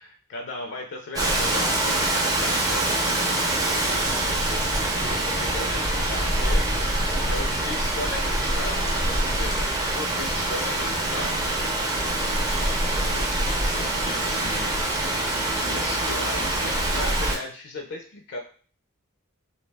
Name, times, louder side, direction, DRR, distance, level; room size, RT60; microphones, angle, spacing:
voice 1, 0.0-2.9 3.7-6.6 7.3-11.4 12.9-14.9 15.5-18.4, left 2 dB, 55° left, 3 dB, 0.4 m, -37 dB
Rain, 1.1-17.4, right 1 dB, 20° right, 0.5 m, -25 dB
2.3 x 2.2 x 3.3 m, 0.42 s
head